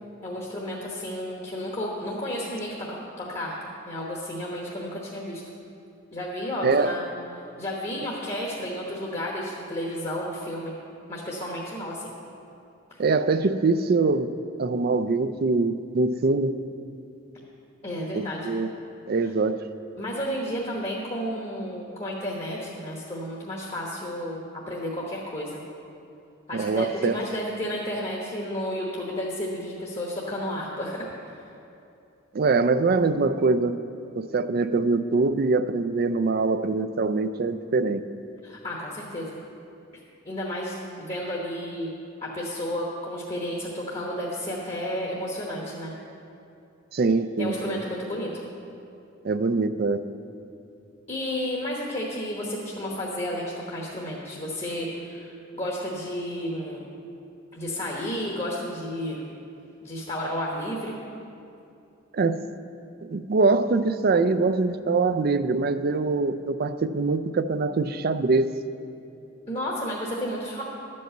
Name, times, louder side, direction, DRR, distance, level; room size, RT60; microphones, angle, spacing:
voice 1, 0.2-3.5 3.9-5.4 6.1-7.0 7.4-10.7 11.1-12.1 12.9-13.0 17.8-18.5 20.0-24.4 24.7-25.6 26.5-31.0 38.4-39.4 40.2-41.9 42.2-45.9 47.4-48.4 51.1-56.8 57.5-59.2 59.8-61.0 69.5-70.6, equal, 30° left, -3 dB, 1.1 m, -32 dB
voice 2, 6.6-6.9 13.0-14.3 14.6-16.6 18.1-18.7 19.1-19.6 26.5-27.2 32.3-33.8 34.2-38.0 46.9-47.8 49.2-50.0 62.1-62.4 63.1-68.5, right 3 dB, 50° right, 11 dB, 0.4 m, -23 dB
11.5 x 5.4 x 7.8 m, 2.6 s
head